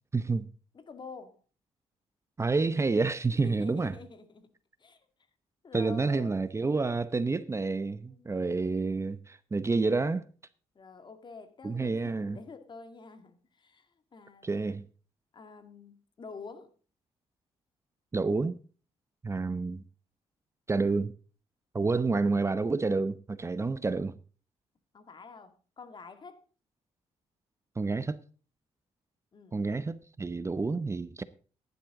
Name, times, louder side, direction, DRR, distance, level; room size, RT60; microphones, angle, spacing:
voice 1, 0.1-0.5 2.4-4.0 5.7-10.3 11.6-12.4 14.4-14.8 18.1-18.6 19.2-19.8 20.7-21.1 21.7-24.2 27.8-28.2 29.5-31.2, right 3 dB, 25° right, 0.8 m, -29 dB
voice 2, 0.7-1.4 3.3-4.5 4.8-5.1 5.6-6.5 8.1-8.3 10.8-14.6 15.3-16.7 24.9-26.5 29.3-29.6, left 4 dB, 40° left, 2.1 m, -48 dB
15.0 x 11.0 x 3.8 m
cardioid pair, 95°, 11 cm